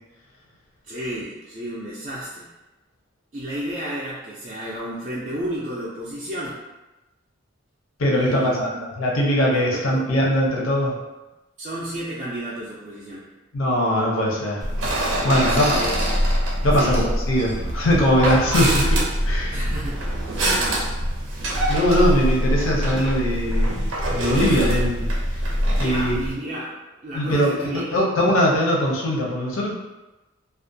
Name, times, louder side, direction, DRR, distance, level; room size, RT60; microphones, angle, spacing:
voice 1, 0.8-2.5 3.3-6.6 8.1-8.8 9.5-10.0 11.6-13.3 15.3-15.9 16.8-17.0 19.5-20.1 20.4-20.9 25.7-27.8, right 1 dB, 35° right, -7 dB, 0.3 m, -32 dB
voice 2, 8.0-8.7 9.0-11.0 13.5-15.8 16.6-19.6 21.7-25.1 25.8-26.2 27.1-29.7, equal, 85° left, -2 dB, 0.6 m, -21 dB
sound 1, 14.6-26.3, equal, 85° right, 0.6 m, -23 dB
2.4 x 2.1 x 2.5 m, 1.1 s
head